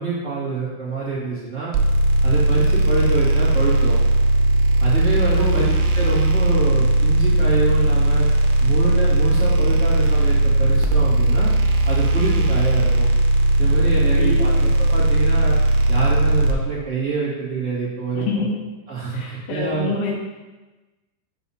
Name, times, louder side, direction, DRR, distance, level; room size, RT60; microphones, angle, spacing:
voice 1, 0.0-1.7 2.2-4.0 4.8-8.3 8.6-11.5 11.8-13.1 13.6-15.6 15.9-18.4 18.9-19.9, right 4 dB, 30° right, -9 dB, 1.3 m, -26 dB
sound 1, 1.7-16.5, right 2 dB, 85° right, 2.8 m, -17 dB
voice 2, 5.3-5.7 9.3-9.5 14.2-14.6 18.1-18.5 19.1-20.1, left 4 dB, 70° left, -3 dB, 2.5 m, -26 dB
7.0 x 6.7 x 4.2 m, 1.2 s
omnidirectional pair, 5.0 m